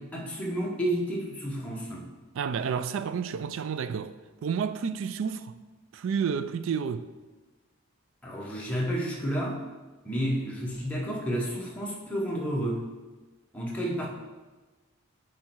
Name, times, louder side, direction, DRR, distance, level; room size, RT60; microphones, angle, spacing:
voice 1, 0.0-2.0 8.2-9.6 10.0-12.8 13.5-14.1, equal, 5° left, 0.9 m, -31 dB
voice 2, 2.3-4.1 4.4-5.5 5.9-7.1, right 6 dB, 60° right, 0.3 m, -30 dB
8.3 x 3.2 x 4.6 m
head